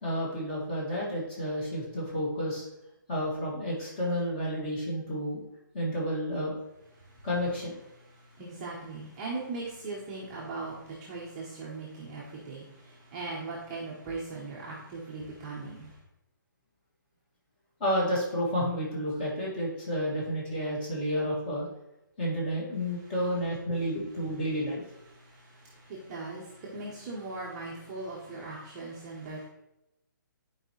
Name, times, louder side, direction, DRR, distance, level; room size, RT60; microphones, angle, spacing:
voice 1, 0.0-2.6 3.1-5.4 5.7-6.6 7.2-7.7 17.8-21.7 22.2-24.8, equal, 25° left, -4 dB, 2.0 m, -31 dB
voice 2, 8.4-15.9 25.1-29.4, right 3 dB, 15° right, -5 dB, 0.9 m, -39 dB
10.5 x 4.7 x 3.1 m, 0.89 s
hypercardioid pair, 175°, 11 cm